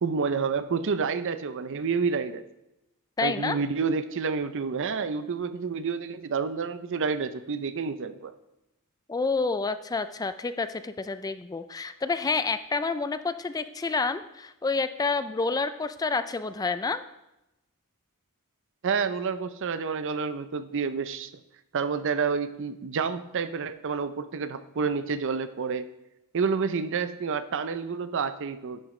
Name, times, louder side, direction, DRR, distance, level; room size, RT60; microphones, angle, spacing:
voice 1, 0.0-2.4 3.2-8.3 18.8-21.3 21.7-25.9 26.3-28.8, right 5 dB, 60° right, 12 dB, 0.5 m, -29 dB
voice 2, 3.2-3.6 9.1-17.0, left 4 dB, 15° left, 11 dB, 0.3 m, -29 dB
11.0 x 8.6 x 3.2 m, 0.92 s
head